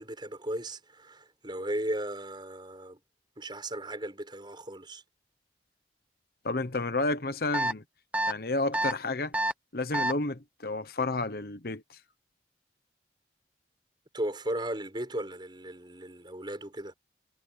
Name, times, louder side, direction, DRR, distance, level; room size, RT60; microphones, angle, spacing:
voice 1, 0.0-3.0 3.4-5.0 14.1-16.9, right 1 dB, 25° right, 6.5 m, -36 dB
voice 2, 6.4-7.8 8.3-9.3 9.7-12.0, left 2 dB, 55° left, 1.1 m, -31 dB
sound 1, 7.5-7.7 8.1-8.3 8.7-8.9 9.3-9.5 9.9-10.1, right 1 dB, 10° right, 1.0 m, -27 dB
head